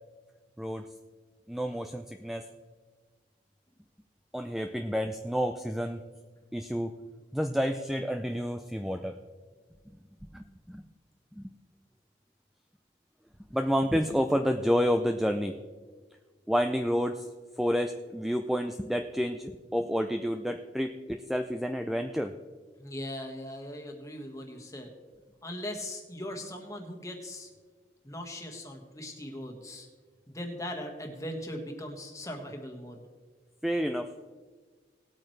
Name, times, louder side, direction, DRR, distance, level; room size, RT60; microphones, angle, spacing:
voice 1, 0.6-0.9 1.5-2.5 4.3-6.0 6.5-6.9 7.3-9.2 10.3-10.8 11.3-11.5 13.5-15.6 16.5-17.3 17.6-22.3 33.6-34.1, equal, ahead, 6 dB, 0.4 m, -29 dB
voice 2, 22.8-24.9 25.4-27.5 28.0-29.9 30.3-33.0, left 1 dB, 20° left, 2 dB, 1.6 m, -39 dB
19.0 x 8.8 x 3.2 m, 1.5 s
head